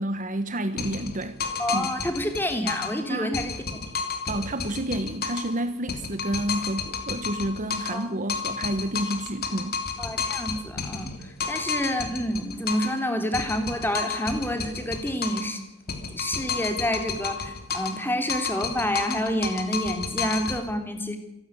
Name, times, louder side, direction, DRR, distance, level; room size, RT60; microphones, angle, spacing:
voice 1, 0.0-1.4 1.7-1.9 3.1-3.4 4.3-9.8, right 1 dB, 40° right, 1.3 m, -30 dB
sound 1, 0.8-3.0 3.3-5.5 5.9-8.0 8.3-13.0 13.3-15.5 15.9-18.0 18.3-20.6, left 5 dB, 50° left, 3.1 m, -31 dB
voice 2, 1.6-3.8 7.9-8.1 10.0-11.1 11.5-15.6 16.1-21.2, equal, 10° left, 3.1 m, -28 dB
27.5 x 12.0 x 9.9 m
head